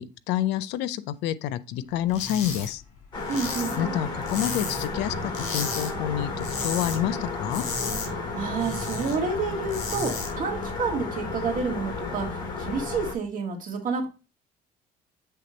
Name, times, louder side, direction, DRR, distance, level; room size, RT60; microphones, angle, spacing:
voice 1, 0.0-2.8 3.8-7.6, left 11 dB, 90° left, 0.5 m, -28 dB
sound 1, 2.1-2.7 3.0-5.0 5.3-5.9 6.2-7.0 7.3-9.1 9.5-10.3, left 4 dB, 45° left, 3.4 m, -34 dB
sound 2, 3.1-13.2, left 3 dB, 25° left, 2.2 m, -33 dB
voice 2, 3.3-4.0 8.1-14.1, right 4 dB, 50° right, 1.9 m, -29 dB
sound 3, 3.4-8.6, left 1 dB, ahead, 1.6 m, -39 dB
7.7 x 3.4 x 4.1 m
cardioid pair, 110°, 17 cm